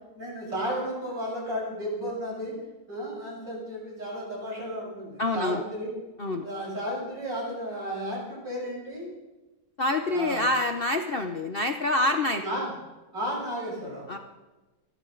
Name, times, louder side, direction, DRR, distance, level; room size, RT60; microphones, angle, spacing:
voice 1, 0.1-2.5 2.9-5.9 6.4-9.1 10.1-10.4 12.3-12.7 13.1-14.0, equal, 65° right, -4 dB, 7.4 m, -33 dB
voice 2, 5.2-5.6 6.2-6.5 9.8-12.4 14.1-14.2, left 2 dB, 45° left, 5 dB, 0.7 m, -26 dB
27.5 x 11.5 x 3.9 m, 1.1 s
omnidirectional pair, 2.1 m